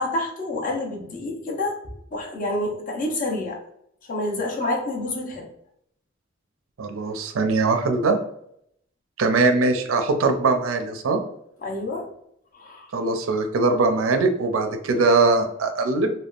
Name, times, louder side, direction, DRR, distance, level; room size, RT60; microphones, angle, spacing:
voice 1, 0.0-1.8 2.1-3.6 4.1-5.5 11.6-12.1 12.5-12.9, left 2 dB, 45° left, 0 dB, 0.7 m, -28 dB
voice 2, 6.8-8.2 9.2-11.2 12.9-16.1, right 3 dB, 85° right, 6 dB, 0.4 m, -21 dB
3.4 x 2.2 x 2.3 m, 0.72 s
head